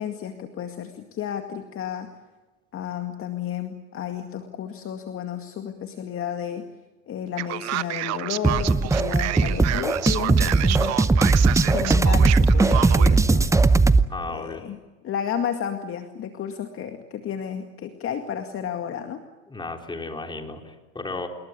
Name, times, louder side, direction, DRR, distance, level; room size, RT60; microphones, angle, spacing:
voice 1, 0.0-2.1 2.7-6.7 7.1-11.0 11.7-13.7 14.2-14.8 15.0-19.2, left 8 dB, 35° left, 6 dB, 2.1 m, -32 dB
Male speech man speaking, 7.4-13.2, right 16 dB, 40° right, 1.1 m, -29 dB
sound 1, 8.4-14.1, right 3 dB, 10° right, 0.8 m, -19 dB
voice 2, 14.1-14.7 19.5-21.3, left 3 dB, 10° left, 3 dB, 3.9 m, -34 dB
27.5 x 21.5 x 8.8 m, 1.2 s
hypercardioid pair, 95°, 40 cm